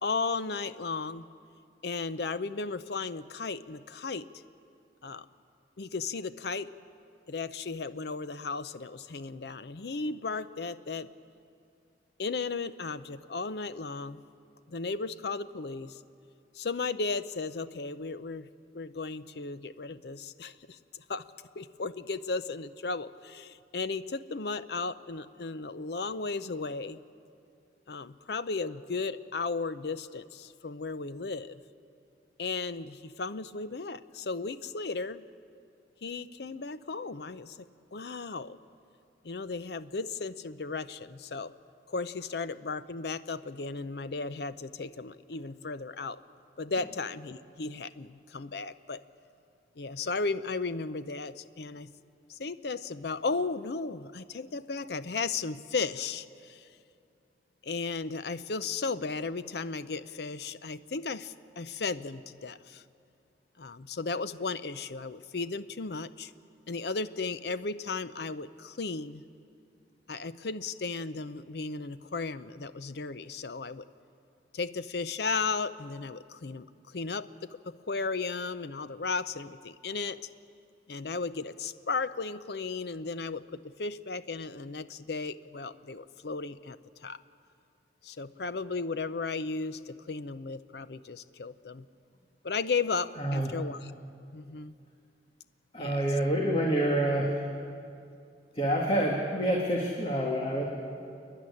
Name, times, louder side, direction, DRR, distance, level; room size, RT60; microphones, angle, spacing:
voice 1, 0.0-1.3 1.8-4.3 5.0-5.3 5.8-6.7 7.3-11.1 12.2-14.2 14.7-16.0 16.5-18.5 18.7-21.2 21.6-27.0 27.9-31.6 32.4-35.2 36.0-37.6 37.9-38.6 39.2-41.5 41.9-46.2 46.6-49.0 49.8-51.9 52.3-56.7 57.6-62.8 63.6-66.3 66.7-69.2 70.1-73.8 74.5-80.2 80.9-87.2 88.0-91.9 92.4-93.9 94.3-94.7 95.8-96.1, left 4 dB, 65° left, 14 dB, 0.6 m, -35 dB
voice 2, 93.2-93.5 95.7-97.4 98.5-100.6, right 1 dB, 30° left, -1 dB, 2.0 m, -27 dB
28.5 x 10.5 x 9.9 m, 2.4 s
head